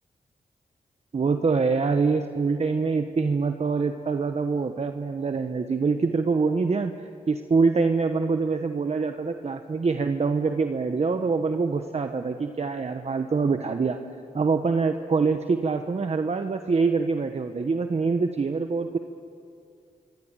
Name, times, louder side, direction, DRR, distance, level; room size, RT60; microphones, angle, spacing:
voice 1, 1.1-14.0 14.3-19.0, right 4 dB, 45° right, 7 dB, 1.2 m, -25 dB
24.5 x 24.0 x 9.0 m, 2.5 s
cardioid pair, 75°, 16 cm